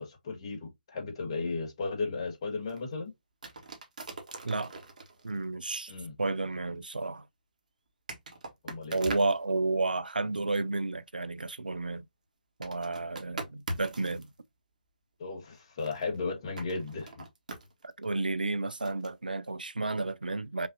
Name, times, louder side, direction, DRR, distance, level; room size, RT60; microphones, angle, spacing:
voice 1, 0.0-3.1 5.9-6.2 8.6-9.0 15.2-17.3, left 4 dB, 35° left, 1.5 m, -35 dB
sound 1, 2.7-2.8 3.4-5.4 7.0-7.1 8.1-9.4 12.6-14.3 15.8-16.2 16.6-18.1 18.8-19.1, right 2 dB, 60° right, 1.3 m, -41 dB
voice 2, 5.2-5.9 6.2-7.2 8.9-12.1 12.6-14.3 17.8-20.7, right 3 dB, 75° right, 0.5 m, -31 dB
5.5 x 2.5 x 2.7 m
figure-of-eight pair, 140°, 5 cm